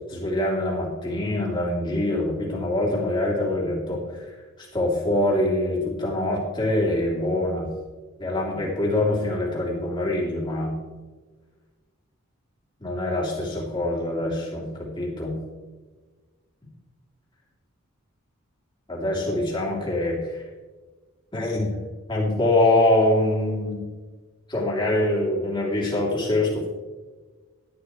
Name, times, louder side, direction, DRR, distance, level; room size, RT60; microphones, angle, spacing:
voice 1, 0.1-7.7 8.2-10.7 12.8-15.4 18.9-20.4 21.3-21.8 22.1-23.8 24.5-26.7, left 1 dB, 20° left, -4 dB, 3.0 m, -24 dB
12.0 x 11.5 x 3.2 m, 1.4 s
head